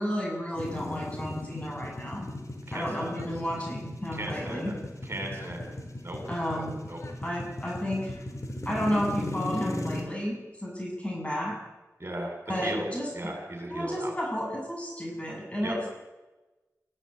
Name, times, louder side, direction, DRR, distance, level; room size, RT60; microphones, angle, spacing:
voice 1, 0.0-2.3 2.7-4.7 6.3-6.8 7.2-8.1 8.7-11.6 12.5-13.1 13.7-15.9, equal, 20° left, -1 dB, 7.2 m, -32 dB
sound 1, 0.6-10.0, left 1 dB, 55° left, 4.0 m, -37 dB
voice 2, 2.7-3.2 4.1-4.6 5.1-5.7 6.0-6.2 6.5-6.6 6.9-7.0 12.0-12.8 13.1-14.1 15.6-15.8, right 1 dB, 40° right, 1 dB, 7.8 m, -36 dB
23.0 x 16.0 x 9.3 m, 1.1 s
wide cardioid pair, 60°, 6 cm